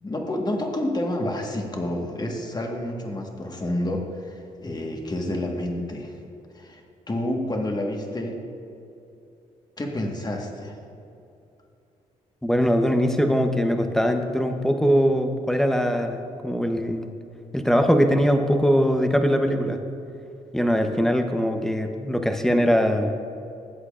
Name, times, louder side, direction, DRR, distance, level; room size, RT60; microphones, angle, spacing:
voice 1, 0.0-6.1 6.5-6.8 7.1-8.4 9.8-10.8, left 1 dB, 25° left, 1 dB, 1.5 m, -29 dB
voice 2, 12.4-17.1 17.5-19.8 20.5-23.1, equal, 5° left, 5 dB, 0.9 m, -21 dB
13.5 x 8.1 x 2.5 m, 2.7 s
supercardioid pair, 55°, 15 cm